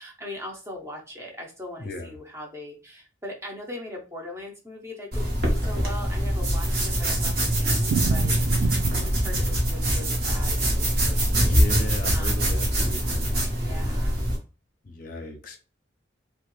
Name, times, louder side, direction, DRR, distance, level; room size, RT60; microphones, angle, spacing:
voice 1, 0.0-11.6 11.8-12.6 13.6-14.3, left 1 dB, 15° right, 0.6 m, -40 dB
voice 2, 1.8-2.1 11.4-14.0 14.8-15.6, left 2 dB, 45° left, 0.5 m, -35 dB
sound 1, 5.1-14.4, equal, 55° right, 1.0 m, -24 dB
Thunder, 6.3-12.3 12.5-12.6 12.9-13.0 13.3-13.4 13.9-14.2, right 5 dB, 75° right, 0.3 m, -34 dB
2.9 x 2.3 x 3.0 m
head